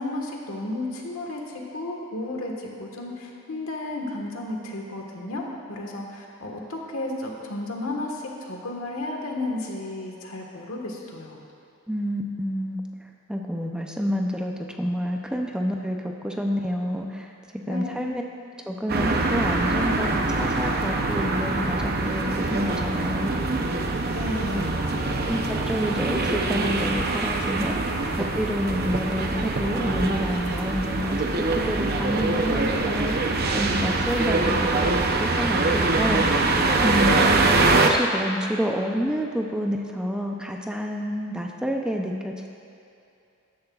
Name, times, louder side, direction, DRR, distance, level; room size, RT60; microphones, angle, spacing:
voice 1, 0.0-1.4 1.7-5.4 5.7-11.4 17.7-18.2 24.1-25.4 37.0-37.4, left 2 dB, 85° left, 0 dB, 1.5 m, -33 dB
voice 2, 11.9-12.8 13.3-14.5 14.8-17.3 17.7-18.2 18.7-23.3 24.5-24.6 25.3-36.2 36.8-37.1 37.9-42.5, equal, 5° right, 1 dB, 0.5 m, -28 dB
sound 1, 18.9-37.9, right 2 dB, 50° right, 0.7 m, -24 dB
14.5 x 10.5 x 2.4 m, 2.6 s
head